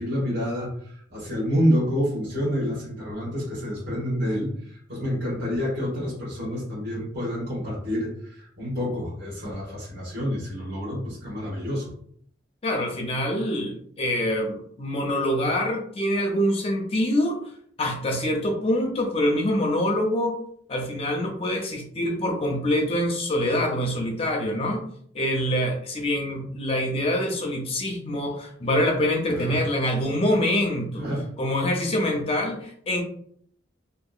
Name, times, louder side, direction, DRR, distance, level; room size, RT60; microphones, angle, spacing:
voice 1, 0.0-11.9 29.3-29.6 31.0-31.2, equal, 65° right, -7 dB, 1.3 m, -28 dB
voice 2, 12.6-17.4 17.8-20.3 20.7-24.8 25.1-31.1 31.4-33.0, left 1 dB, 30° left, 2 dB, 0.4 m, -25 dB
2.7 x 2.4 x 2.4 m, 0.63 s
head